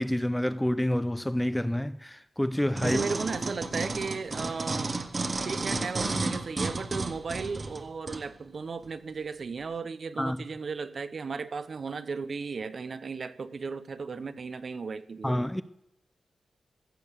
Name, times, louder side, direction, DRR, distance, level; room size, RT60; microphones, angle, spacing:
voice 1, 0.0-3.0 10.2-10.4 15.2-15.6, left 1 dB, 5° left, 0.4 m, -28 dB
sound 1, 2.8-8.2 8.8-8.9, right 3 dB, 35° right, 1.0 m, -32 dB
voice 2, 2.8-4.9 5.4-15.4, right 4 dB, 50° right, 0.7 m, -35 dB
15.5 x 6.8 x 6.7 m
wide cardioid pair, 135°, 0 cm